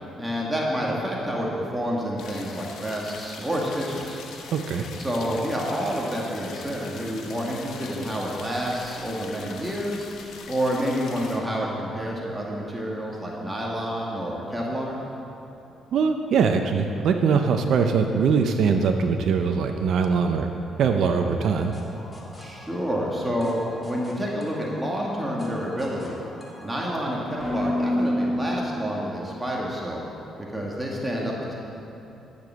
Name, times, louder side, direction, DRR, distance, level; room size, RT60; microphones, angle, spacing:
voice 1, 0.2-4.2 5.0-10.1 10.5-15.0 22.4-26.2 26.6-30.0 30.4-31.5, equal, 10° right, -3 dB, 1.9 m, -28 dB
sound 1, 2.2-11.4, left 5 dB, 80° left, 1.1 m, -42 dB
voice 2, 4.5-4.8 15.9-20.5 20.8-21.7, right 5 dB, 70° right, 5 dB, 0.6 m, -22 dB
sound 2, 21.4-29.2, left 1 dB, 20° left, 2.2 m, -33 dB
12.5 x 6.9 x 6.3 m, 2.9 s
cardioid pair, 90°, 0 cm